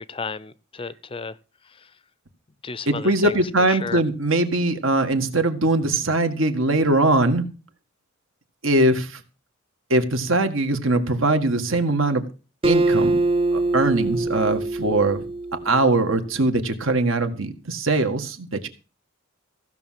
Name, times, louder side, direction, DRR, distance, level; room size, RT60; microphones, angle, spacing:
voice 1, 0.0-1.4 1.8-1.9 2.6-3.4 3.7-4.0, left 4 dB, 25° left, 0.5 m, -33 dB
voice 2, 2.9-7.5 8.6-9.2 9.9-12.2 12.6-13.2 13.5-15.2 15.5-18.7, right 2 dB, 70° right, 1.9 m, -21 dB
Acoustic guitar, 12.6-16.0, right 2 dB, 25° right, 0.6 m, -23 dB
15.5 x 6.3 x 7.5 m
head